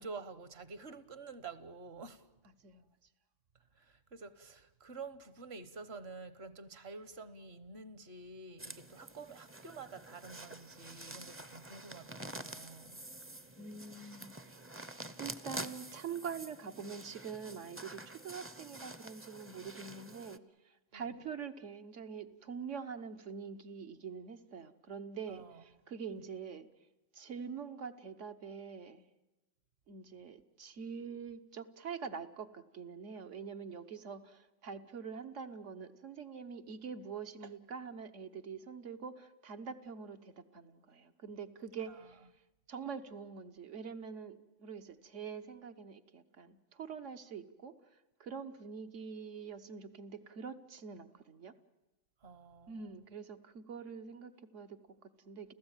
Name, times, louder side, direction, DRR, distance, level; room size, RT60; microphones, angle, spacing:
voice 1, 0.0-2.2 3.7-13.0 20.9-21.2 25.3-25.6 26.1-26.2 41.9-42.0 52.2-53.0, right 4 dB, 55° right, 1.4 m, -49 dB
sound 1, 8.6-20.4, right 1 dB, 15° right, 0.5 m, -48 dB
voice 2, 13.6-14.6 15.2-26.7 27.1-29.1 29.9-42.2 42.7-47.7 48.2-51.5 52.7-55.5, right 6 dB, 75° right, 1.4 m, -45 dB
30.0 x 15.0 x 9.0 m
omnidirectional pair, 1.3 m